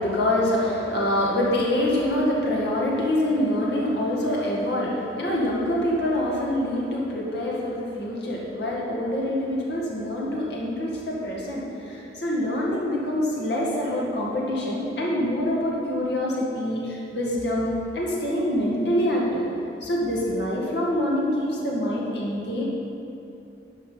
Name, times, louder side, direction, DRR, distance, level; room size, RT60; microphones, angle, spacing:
voice 1, 0.0-19.5 19.8-22.6, left 1 dB, 75° left, -4 dB, 2.0 m, -25 dB
10.5 x 5.8 x 5.6 m, 2.9 s
head